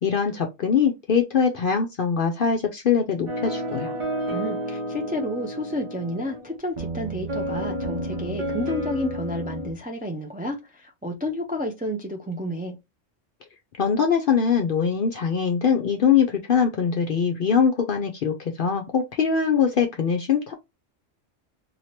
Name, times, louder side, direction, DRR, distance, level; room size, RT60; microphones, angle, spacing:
voice 1, 0.0-3.9 13.8-20.5, left 6 dB, 60° left, 0.6 m, -22 dB
sound 1, 3.3-9.7, right 1 dB, 30° right, 0.7 m, -31 dB
voice 2, 4.3-12.8, equal, 15° right, 0.3 m, -30 dB
2.8 x 2.8 x 3.0 m
omnidirectional pair, 1.3 m